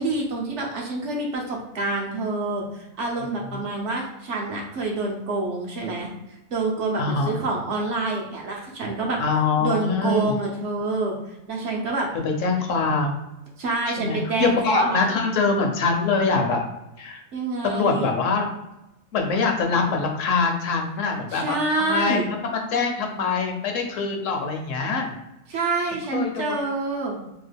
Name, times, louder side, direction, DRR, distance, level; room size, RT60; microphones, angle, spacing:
voice 1, 0.0-9.2 9.6-11.1 11.5-12.1 13.6-15.2 17.3-18.1 21.3-22.3 25.5-27.2, right 3 dB, 65° right, -1 dB, 0.9 m, -27 dB
voice 2, 7.0-7.3 9.2-10.4 12.4-13.2 14.0-16.6 17.0-17.2 17.6-18.5 19.1-22.4 22.7-25.1 26.1-26.6, left 4 dB, 70° left, 3 dB, 1.0 m, -24 dB
2.9 x 2.3 x 3.3 m, 0.92 s
omnidirectional pair, 1.4 m